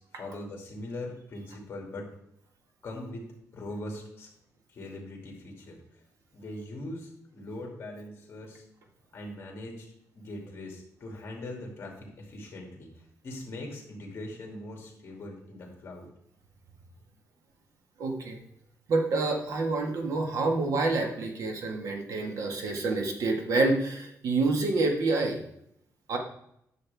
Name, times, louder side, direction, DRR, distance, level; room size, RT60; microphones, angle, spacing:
voice 1, 0.0-2.1 2.8-3.3 3.5-4.3 4.7-6.0 6.3-8.6 9.1-9.9 10.1-16.1, left 1 dB, 40° left, 0 dB, 2.6 m, -41 dB
voice 2, 18.0-18.4 18.9-25.4 26.1-26.2, right 3 dB, 65° right, 3 dB, 1.6 m, -27 dB
11.0 x 6.7 x 3.5 m, 0.75 s
wide cardioid pair, 175°, 6 cm